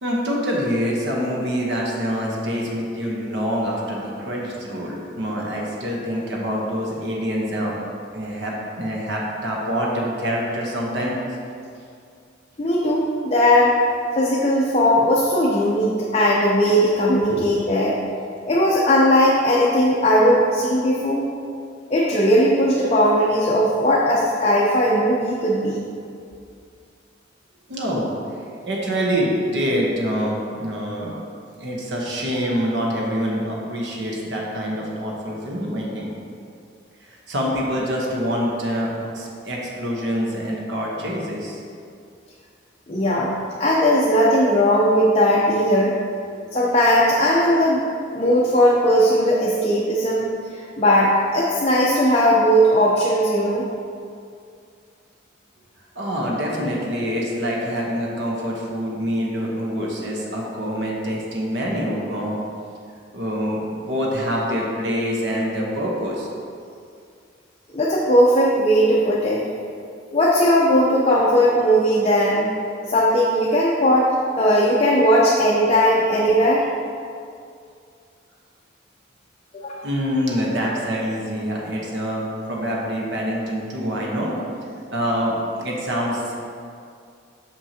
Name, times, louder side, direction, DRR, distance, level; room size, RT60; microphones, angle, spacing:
voice 1, 0.0-7.7 8.1-11.2 17.3-17.4 27.7-28.1 28.7-31.2 31.6-36.1 37.0-41.6 46.3-46.4 55.9-62.4 63.1-63.6 63.9-66.3 79.8-84.3 84.9-86.3, equal, 65° right, -3 dB, 1.0 m, -25 dB
voice 2, 12.6-13.8 14.2-18.0 18.5-21.2 21.9-25.8 42.9-43.3 43.6-45.9 46.5-47.9 48.1-53.6 67.7-69.5 70.1-72.5 72.9-74.1 74.4-76.7 79.5-79.9, equal, 35° left, -5 dB, 0.6 m, -18 dB
6.4 x 5.9 x 2.8 m, 2.4 s
head